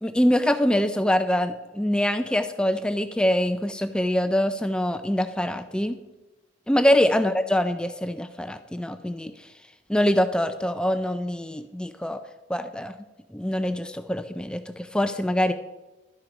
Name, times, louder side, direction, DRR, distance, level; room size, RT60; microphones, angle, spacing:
voice 1, 0.0-6.0 6.7-9.5 9.9-12.2 12.5-13.0 13.3-15.5, equal, 5° left, 9 dB, 0.3 m, -24 dB
12.0 x 6.3 x 4.9 m, 1.1 s
head